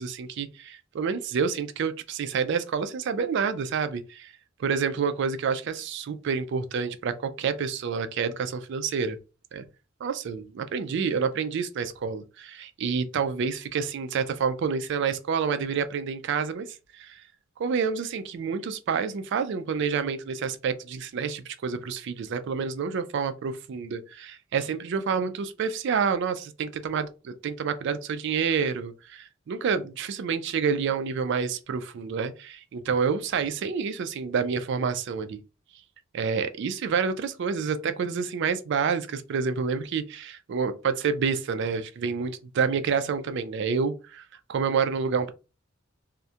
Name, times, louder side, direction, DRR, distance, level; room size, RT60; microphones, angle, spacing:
voice 1, 0.0-4.3 4.6-9.2 9.5-9.6 10.0-17.2 17.6-35.4 36.1-45.3, right 6 dB, 60° right, 0.3 m, -28 dB
2.3 x 2.1 x 2.7 m
head